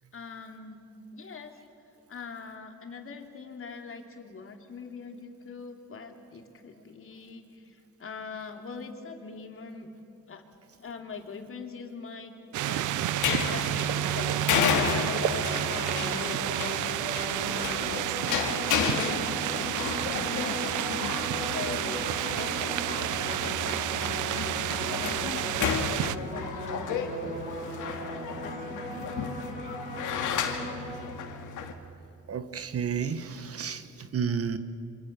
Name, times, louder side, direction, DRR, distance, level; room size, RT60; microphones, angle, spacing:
voice 1, 0.1-0.8 1.1-1.5 2.1-9.9 10.3-10.4 10.8-12.3 12.6-17.0 17.5-18.3 18.7-20.7 21.4-24.4 24.8-27.1 27.6-29.2, left 5 dB, 45° left, 4 dB, 3.1 m, -42 dB
sound 1, 12.5-26.2, right 14 dB, 80° right, 0.7 m, -30 dB
sound 2, 13.0-31.7, left 7 dB, 80° left, 2.4 m, -33 dB
sound 3, 13.7-31.0, right 1 dB, 30° right, 5.9 m, -39 dB
voice 2, 27.2-27.6 32.3-34.6, right 7 dB, 50° right, 11 dB, 1.5 m, -32 dB
27.5 x 26.0 x 6.9 m, 2.6 s
cardioid pair, 90°, 30 cm